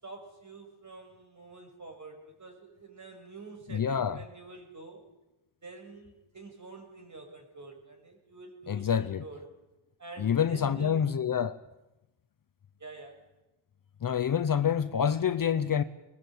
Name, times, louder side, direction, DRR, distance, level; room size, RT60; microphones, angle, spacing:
voice 1, 0.0-5.1 5.6-9.5 10.0-11.1 12.8-13.2, right 3 dB, 35° right, 6.4 m, -47 dB
voice 2, 3.7-4.2 8.7-9.2 10.2-11.6 14.0-15.8, left 8 dB, 40° left, 0.9 m, -27 dB
22.0 x 20.5 x 8.2 m
cardioid pair, 95°, 49 cm